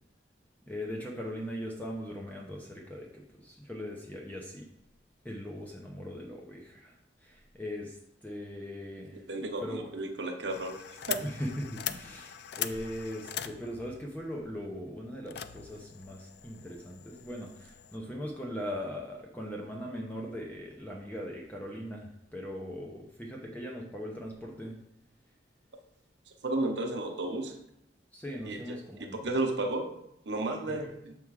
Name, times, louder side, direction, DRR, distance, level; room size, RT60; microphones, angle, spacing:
voice 1, 0.7-4.7 5.2-9.2 9.6-9.9 11.2-24.7 28.1-29.2 30.6-31.0, equal, 10° left, -1 dB, 0.7 m, -40 dB
voice 2, 9.3-10.7 11.1-11.2 26.4-27.5 28.4-28.6 29.0-29.9 30.3-30.9, right 2 dB, 70° right, 4 dB, 0.8 m, -32 dB
sound 1, 10.5-18.0, left 10 dB, 60° left, 0.3 m, -41 dB
6.7 x 3.6 x 4.7 m, 0.79 s
head